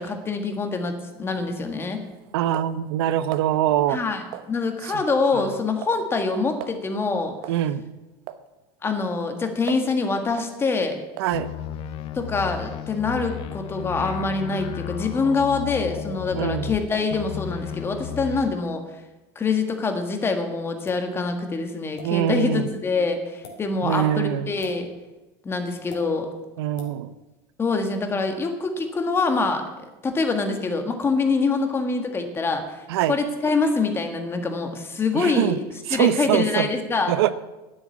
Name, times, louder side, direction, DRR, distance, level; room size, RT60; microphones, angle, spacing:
voice 1, 0.0-2.0 3.9-7.4 8.8-11.0 12.2-18.8 19.4-24.9 25.5-26.3 27.6-29.6 30.0-32.8 33.1-35.6 35.9-37.1, left 4 dB, 20° left, 5 dB, 1.7 m, -25 dB
sound 1, 1.2-3.5 4.3-4.8 5.1-5.3 5.6-6.0 6.3-6.4 6.6-6.8 7.4-7.7 8.3-8.4 8.9-10.0 10.4-10.6 11.2-11.4, right 12 dB, 60° right, 1.0 m, -39 dB
voice 2, 2.3-4.0 4.9-5.0 7.5-7.8 11.2-11.5 16.4-16.7 22.0-22.7 23.8-24.5 26.6-27.1 32.9-33.1 35.1-35.6 35.9-36.7 37.1-37.3, right 11 dB, 85° right, 14 dB, 0.9 m, -23 dB
sound 2, 11.3-16.8 17.1-18.5, left 10 dB, 45° left, 0.9 m, -33 dB
sound 3, 20.9-21.1 22.0-22.1 23.3-23.6 24.6-24.8 25.9-26.0 26.8-26.9, left 4 dB, 80° left, 3.2 m, -41 dB
10.0 x 8.0 x 9.4 m, 1.1 s
supercardioid pair, 145°, 13 cm